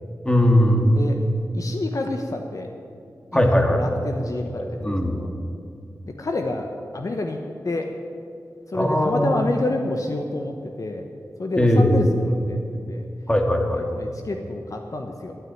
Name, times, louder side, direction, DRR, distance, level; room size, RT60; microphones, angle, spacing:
voice 1, 0.2-1.0 3.3-3.9 4.6-5.2 8.7-9.4 11.6-12.0 13.3-13.8, equal, 15° left, 2 dB, 2.0 m, -19 dB
voice 2, 1.5-2.7 3.3-4.8 5.1-5.3 6.0-6.7 6.9-7.4 7.6-7.9 8.7-11.1 11.4-13.1 13.7-15.4, left 2 dB, 55° left, 4 dB, 1.0 m, -28 dB
12.5 x 9.5 x 9.4 m, 2.4 s
wide cardioid pair, 75°, 7 cm